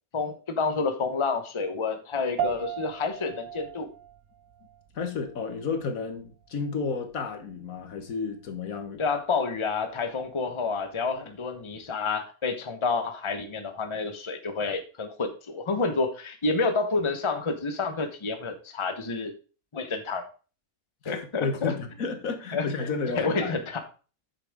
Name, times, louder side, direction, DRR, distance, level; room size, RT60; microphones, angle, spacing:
voice 1, 0.1-3.9 9.0-19.3 19.7-20.3 21.1-21.7 22.5-22.7 23.1-23.9, left 4 dB, 25° left, 7 dB, 1.0 m, -29 dB
sound 1, 2.4-12.0, right 10 dB, 75° right, 1.2 m, -40 dB
voice 2, 4.9-9.0 21.0-23.5, left 4 dB, 70° left, 7 dB, 1.6 m, -32 dB
8.7 x 6.8 x 3.6 m, 0.35 s
omnidirectional pair, 1.5 m